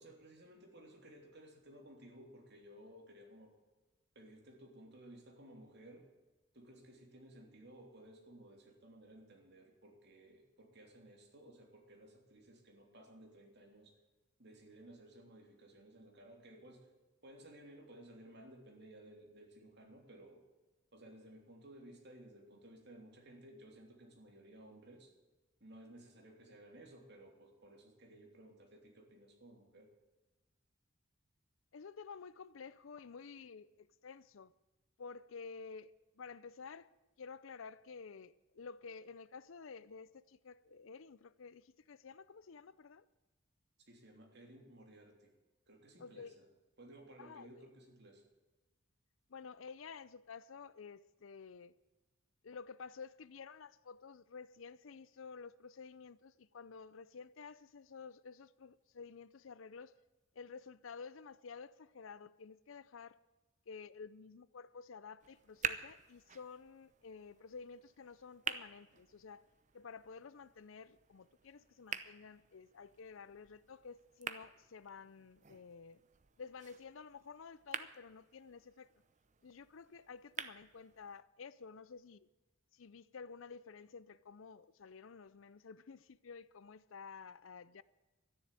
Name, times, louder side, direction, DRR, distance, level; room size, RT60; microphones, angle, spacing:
voice 1, 0.0-3.5 4.1-6.1 6.5-13.9 14.4-16.9 17.2-20.4 20.9-25.1 25.6-29.9 43.8-45.3 45.7-46.4 46.8-48.2, right 1 dB, 55° right, 3.1 m, -57 dB
voice 2, 31.7-34.5 35.0-36.9 37.2-43.1 46.0-46.4 47.2-47.7 49.3-51.7 52.4-60.0 60.3-63.2 63.7-69.5 69.7-76.0 76.4-78.9 79.4-82.3 82.7-87.8, left 5 dB, 75° left, 0.5 m, -52 dB
sound 1, 65.2-81.2, right 7 dB, 35° right, 0.7 m, -48 dB
13.0 x 10.5 x 8.3 m
head